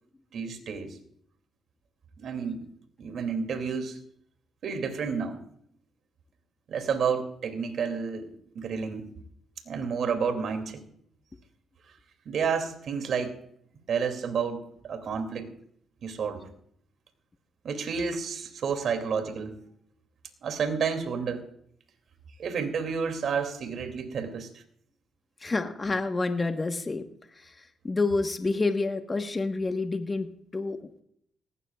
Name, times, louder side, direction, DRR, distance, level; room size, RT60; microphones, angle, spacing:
voice 1, 0.3-1.0 2.2-2.6 3.0-4.0 4.6-5.4 6.7-9.1 9.7-10.8 12.3-13.4 13.9-15.5 16.0-16.4 17.6-19.6 20.4-21.4 22.4-24.6, right 6 dB, 65° right, 7 dB, 2.6 m, -30 dB
voice 2, 25.4-27.0 27.4-27.5 27.8-30.9, left 3 dB, 25° left, 6 dB, 1.3 m, -28 dB
18.5 x 16.0 x 2.4 m, 0.66 s
cardioid pair, 80°, 0 cm